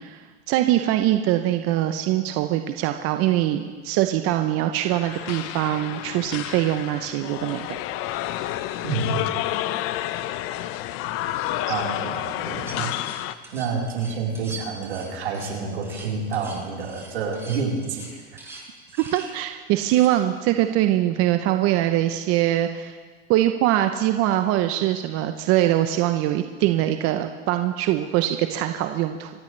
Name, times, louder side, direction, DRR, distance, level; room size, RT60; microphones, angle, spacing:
voice 1, 0.0-7.8 11.7-11.8 19.0-23.0 23.3-29.3, right 13 dB, 45° right, 7 dB, 0.8 m, -23 dB
sound 1, 4.7-13.3, left 14 dB, 45° left, 0.8 m, -30 dB
voice 2, 8.8-9.3 11.6-18.2, right 4 dB, 80° right, -2 dB, 4.3 m, -29 dB
sound 2, 12.6-19.4 19.8-20.1, right 3 dB, 10° right, 4.9 m, -42 dB
26.5 x 14.5 x 3.3 m, 1.5 s
hypercardioid pair, 115°, 33 cm